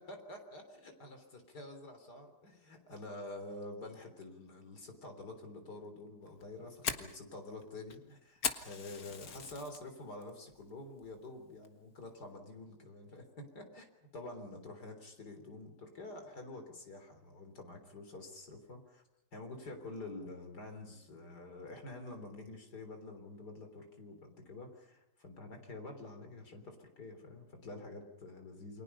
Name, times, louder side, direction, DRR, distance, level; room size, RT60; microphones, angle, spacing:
voice 1, 0.1-8.3 8.6-13.9 14.1-19.0 19.3-28.8, left 2 dB, 80° left, 5 dB, 4.3 m, -48 dB
Fire, 6.3-9.8 10.2-10.6 11.0-11.1 11.6-12.0, left 5 dB, 65° left, 1.9 m, -39 dB
29.0 x 24.5 x 5.7 m, 0.89 s
omnidirectional pair, 1.7 m